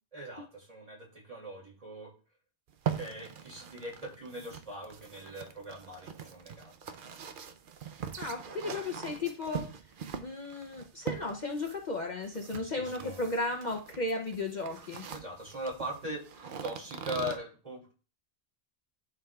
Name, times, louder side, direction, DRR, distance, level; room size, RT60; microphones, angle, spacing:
voice 1, 0.1-2.1 3.0-6.7 8.6-8.8 12.6-13.2 15.1-17.9, equal, 35° right, -2 dB, 2.5 m, -41 dB
sound 1, 2.7-17.4, right 8 dB, 55° right, 0.7 m, -42 dB
voice 2, 8.2-9.7 10.2-15.0, left 2 dB, 45° left, 2 dB, 0.8 m, -35 dB
11.5 x 4.7 x 2.3 m, 0.37 s
omnidirectional pair, 1.1 m